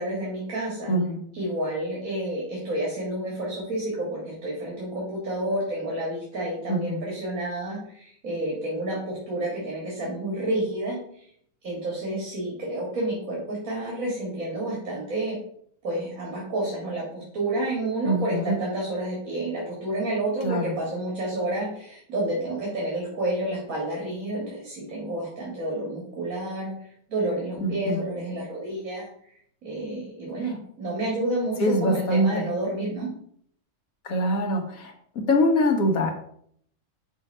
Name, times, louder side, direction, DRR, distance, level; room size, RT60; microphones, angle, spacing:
voice 1, 0.0-0.9 1.3-11.3 11.6-15.4 15.8-29.1 29.6-33.1, right 1 dB, 80° right, -4 dB, 2.2 m, -30 dB
voice 2, 0.9-1.2 6.7-7.0 18.0-18.6 20.4-20.7 27.6-28.0 31.6-32.4 34.0-34.9 35.3-36.1, equal, 85° left, 2 dB, 1.6 m, -23 dB
6.1 x 3.8 x 5.3 m, 0.65 s
omnidirectional pair, 1.4 m